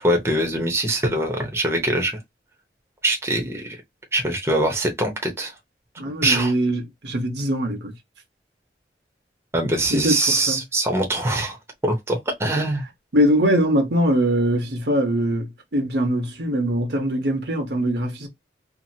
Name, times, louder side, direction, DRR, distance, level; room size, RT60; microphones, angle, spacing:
voice 1, 0.0-2.2 3.0-3.8 4.1-5.5 6.2-6.5 9.5-11.6 11.8-12.8, right 1 dB, 15° right, 0.7 m, -23 dB
voice 2, 6.0-7.9 9.9-10.6 13.1-18.3, equal, 75° right, 1.0 m, -22 dB
2.8 x 2.4 x 2.7 m
head